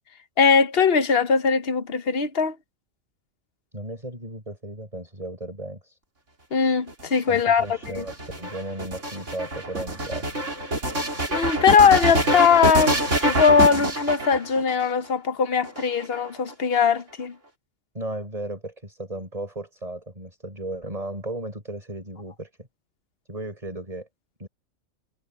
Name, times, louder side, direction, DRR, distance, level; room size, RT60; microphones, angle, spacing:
voice 1, 0.4-2.5 6.5-7.6 7.9-8.0 11.3-17.3, left 6 dB, 50° left, 1.3 m, -20 dB
voice 2, 3.7-6.0 7.3-10.3 17.9-22.7 23.3-24.1 24.4-24.5, right 1 dB, 25° right, 6.5 m, -35 dB
sound 1, 6.9-14.8 15.6-16.5, right 1 dB, 65° right, 3.7 m, -26 dB
omnidirectional pair, 1.4 m